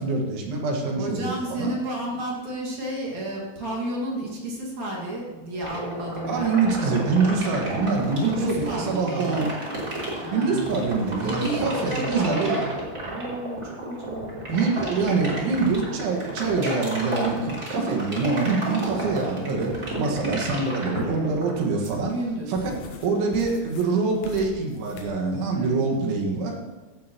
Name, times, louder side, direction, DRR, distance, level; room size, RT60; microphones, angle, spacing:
voice 1, 0.0-1.7 6.3-9.6 10.3-12.5 14.5-22.1 22.5-22.7 23.0-26.6, right 4 dB, 85° right, 0 dB, 4.2 m, -25 dB
voice 2, 1.0-6.6 8.2-9.3 10.2-10.8 11.1-12.7 13.0-14.4 21.8-22.5 23.1-23.4 25.5-25.9, right 1 dB, 50° right, -3 dB, 2.8 m, -32 dB
sound 1, 5.6-21.6, right 1 dB, 20° right, 2.8 m, -31 dB
sound 2, 20.0-25.1, left 5 dB, 75° left, 1.6 m, -41 dB
16.0 x 12.5 x 3.0 m, 1.3 s
omnidirectional pair, 5.2 m